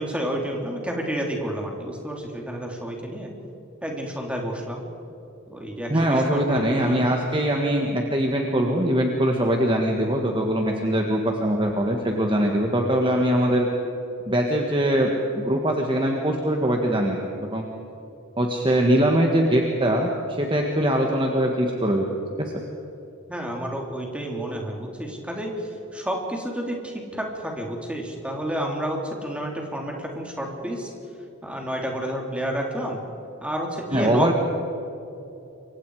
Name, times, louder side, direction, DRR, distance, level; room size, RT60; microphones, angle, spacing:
voice 1, 0.0-3.3 3.8-4.8 5.5-7.1 23.3-25.5 25.9-30.9 31.4-33.0 33.4-34.3, equal, 5° right, 0 dB, 3.3 m, -30 dB
voice 2, 5.9-13.7 14.3-17.2 17.5-17.7 18.4-20.1 20.4-22.1 22.4-22.5 33.9-34.3, right 1 dB, 25° right, 1 dB, 1.7 m, -22 dB
28.0 x 24.0 x 4.9 m, 2.9 s
head